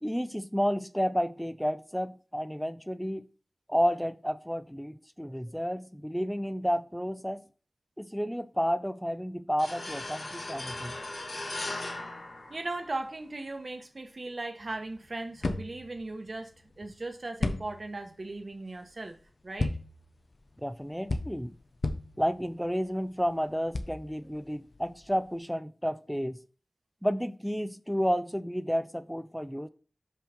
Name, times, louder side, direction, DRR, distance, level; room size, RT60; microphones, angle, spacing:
voice 1, 0.0-3.3 3.7-7.4 8.0-11.0 20.6-21.6 22.2-26.4 27.0-29.7, equal, ahead, 0.4 m, -31 dB
sound 1, 9.6-13.2, left 2 dB, 80° left, 1.7 m, -38 dB
voice 2, 12.5-19.2 19.4-19.7, right 2 dB, 55° right, 1.1 m, -38 dB
sound 2, 14.6-25.4, left 2 dB, 60° left, 0.8 m, -37 dB
5.6 x 5.6 x 5.1 m
wide cardioid pair, 85°, 0 cm